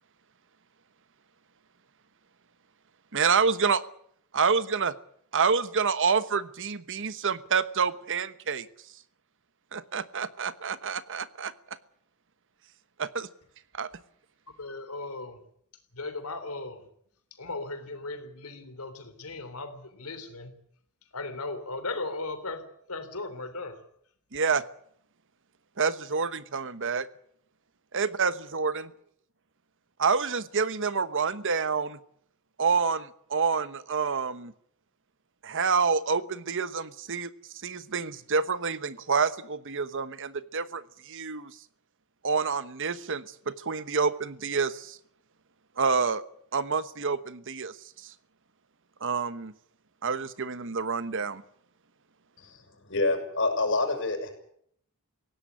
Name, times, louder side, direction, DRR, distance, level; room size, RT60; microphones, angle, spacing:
voice 1, 3.1-3.8 4.3-4.9 5.3-8.7 9.7-11.5 13.0-13.3 13.7-13.9 24.3-24.6 25.8-27.1 27.9-28.9 30.0-32.0 32.6-34.5 35.4-37.3 37.6-41.5 42.2-45.0 45.8-46.2 46.5-48.1 49.0-49.5 50.0-51.4, right 5 dB, 60° right, 1.2 m, -28 dB
voice 2, 14.6-15.4 15.9-16.9 17.3-20.5 21.1-23.8, left 3 dB, 90° left, 3.4 m, -37 dB
voice 3, 52.9-54.3, left 2 dB, 60° left, 6.4 m, -27 dB
19.5 x 17.0 x 9.6 m
head